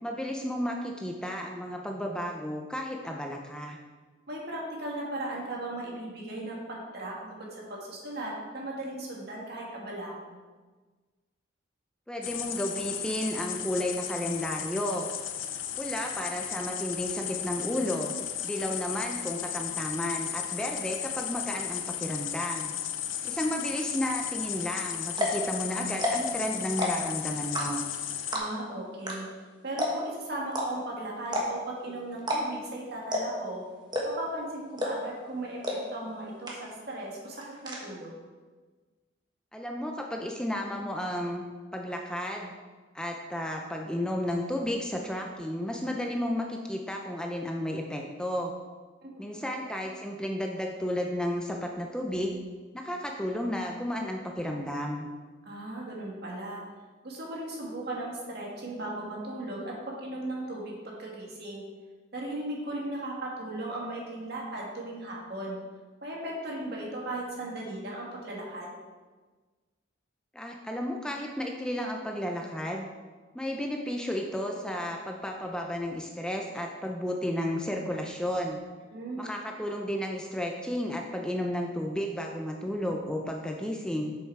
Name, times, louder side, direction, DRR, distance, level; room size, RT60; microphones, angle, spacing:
voice 1, 0.0-3.8 12.1-15.1 15.8-18.1 18.4-22.7 23.2-27.8 39.5-41.4 41.7-42.5 42.9-48.5 49.2-52.3 52.7-55.1 70.3-72.9 73.3-78.6 79.2-84.2, equal, 5° left, 1 dB, 0.6 m, -33 dB
voice 2, 4.3-10.4 28.3-29.2 29.6-33.7 34.0-37.4 37.6-38.1 49.0-49.2 55.5-56.6 57.0-61.7 62.1-65.6 66.0-68.7 78.9-79.2, right 1 dB, 55° right, -3 dB, 2.1 m, -37 dB
sound 1, 12.2-28.4, left 10 dB, 90° left, 0.7 m, -35 dB
sound 2, 24.6-24.7 25.1-25.4 25.9-26.3 26.7-27.1 27.5-27.9 28.3-28.7 29.1-29.2 29.4-29.5 29.8-30.1 30.5-30.7 31.3-31.7 32.2-32.4 32.7-32.8 33.1-33.4 33.9-34.3 34.8-35.1 35.6-35.7 36.1-36.2 36.5-36.9 37.2-37.8, equal, 25° right, 1.4 m, -29 dB
7.2 x 7.0 x 4.7 m, 1.4 s
head